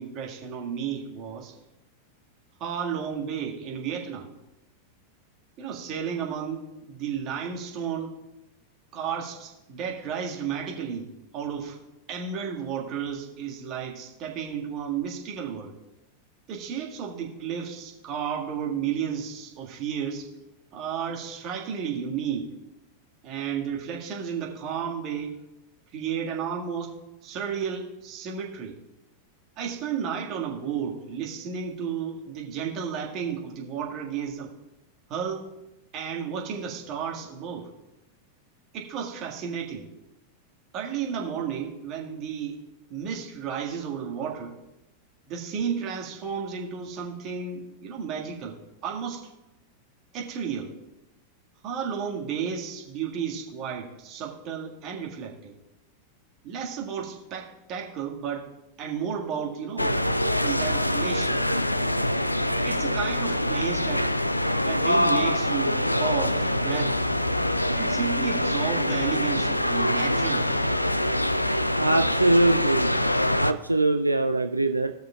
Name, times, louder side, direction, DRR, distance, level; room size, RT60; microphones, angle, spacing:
voice 1, 0.0-1.5 2.6-4.3 5.6-8.1 8.9-11.1 11.3-11.8 12.1-15.7 16.5-20.3 20.7-22.5 23.2-25.4 25.9-26.9 27.2-28.8 29.6-34.5 35.1-35.5 35.9-37.7 38.7-39.9 40.7-42.6 42.9-44.6 45.3-48.6 48.8-49.2 50.1-50.7 51.6-55.5 56.4-58.5 58.8-59.9 60.4-61.4 62.6-64.1 64.6-67.0 67.7-70.7, right 7 dB, 35° right, -1 dB, 1.7 m, -32 dB
sound 1, 59.8-73.5, left 1 dB, 85° left, 0.3 m, -24 dB
voice 2, 71.8-73.0 73.4-74.9, right 2 dB, 85° right, 6 dB, 0.3 m, -22 dB
17.5 x 6.3 x 2.3 m, 0.94 s
figure-of-eight pair, 90°, 0 cm